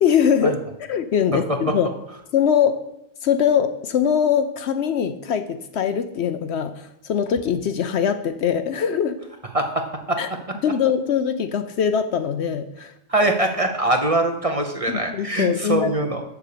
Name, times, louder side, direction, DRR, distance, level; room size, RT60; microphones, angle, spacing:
voice 1, 0.0-0.6 0.9-1.9 2.3-2.8 3.2-9.2 10.2-10.3 10.6-12.9 14.9-15.9, left 8 dB, 65° left, 9 dB, 0.8 m, -22 dB
voice 2, 9.5-10.2 13.1-16.2, right 2 dB, 30° right, 4 dB, 0.8 m, -22 dB
7.0 x 6.9 x 6.7 m, 0.83 s
omnidirectional pair, 1.3 m